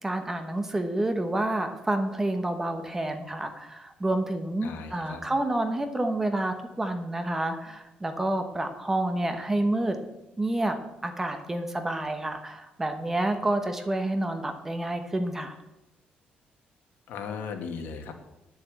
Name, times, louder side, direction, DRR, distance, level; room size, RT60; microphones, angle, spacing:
voice 1, 0.0-10.0 10.4-10.8 11.0-15.6, right 1 dB, 10° right, 7 dB, 1.0 m, -29 dB
voice 2, 4.6-5.2 17.1-18.1, left 6 dB, 80° left, 5 dB, 1.7 m, -37 dB
10.0 x 7.0 x 8.1 m, 0.93 s
cardioid pair, 165°, 3 cm